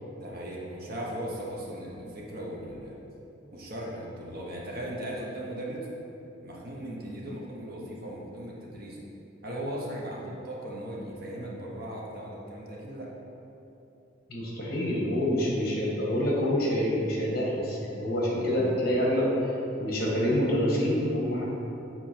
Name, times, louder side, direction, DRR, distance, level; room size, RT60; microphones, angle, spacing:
voice 1, 0.2-2.9 3.5-5.9 6.4-9.0 9.4-13.1 18.3-18.8, right 1 dB, 50° right, -3 dB, 1.1 m, -38 dB
voice 2, 14.3-19.3 19.8-21.4, equal, 50° left, -4 dB, 1.5 m, -27 dB
7.8 x 4.3 x 4.5 m, 2.9 s
head